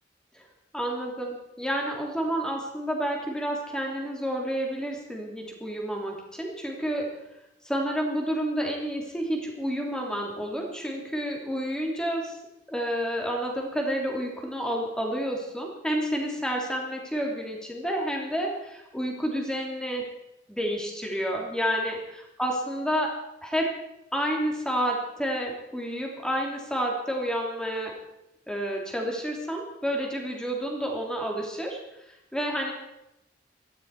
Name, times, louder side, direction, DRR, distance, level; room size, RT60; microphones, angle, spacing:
voice 1, 0.7-7.1 7.6-12.4 12.7-20.1 20.5-22.0 22.4-23.1 23.4-23.7 24.1-27.9 28.5-31.8 32.3-32.7, equal, 5° left, 0 dB, 3.0 m, -29 dB
17.5 x 13.5 x 4.8 m, 0.88 s
head